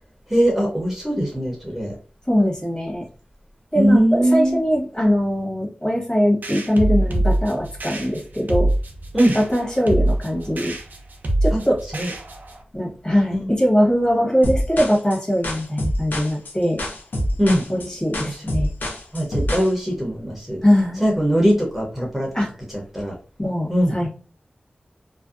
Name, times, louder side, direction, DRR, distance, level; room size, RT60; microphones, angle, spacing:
voice 1, 0.3-2.0 3.8-4.6 9.1-9.4 11.5-11.6 11.9-12.1 13.3-13.5 17.4-17.6 18.3-18.4 19.1-20.6 21.0-22.3 22.7-23.2 23.7-23.9, equal, 10° right, -2 dB, 0.7 m, -20 dB
voice 2, 2.3-3.0 3.7-8.7 9.3-10.7 11.4-11.8 12.7-16.8 17.7-18.7 20.6-21.0 22.3-22.5 23.4-24.1, equal, 30° left, -3 dB, 1.2 m, -21 dB
sound 1, 6.4-12.6, right 1 dB, 75° right, 0.5 m, -24 dB
sound 2, 14.4-19.7, equal, 85° left, 0.5 m, -26 dB
2.6 x 2.1 x 2.4 m, 0.38 s
wide cardioid pair, 65°, 3 cm